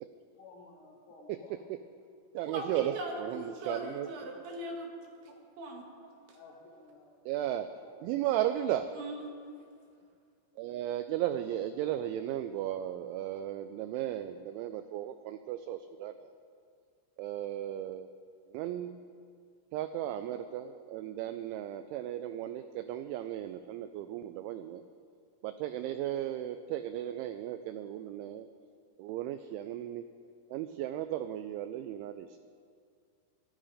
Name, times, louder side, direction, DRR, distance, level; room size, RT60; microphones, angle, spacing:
voice 1, 0.4-1.5 6.3-7.2 7.8-8.0, left 3 dB, 70° left, -2 dB, 4.6 m, -54 dB
voice 2, 1.3-1.8 2.4-4.1 7.3-7.7 8.0-8.9 10.6-16.3 17.2-18.1 18.5-19.0 19.7-24.8 25.4-28.5 29.0-30.1 30.5-32.5, right 12 dB, 85° right, 10 dB, 2.7 m, -35 dB
voice 3, 2.5-4.9 5.2-6.3 8.9-9.4, right 2 dB, 65° right, 0 dB, 3.8 m, -40 dB
18.0 x 12.5 x 4.9 m, 2.2 s
omnidirectional pair, 5.9 m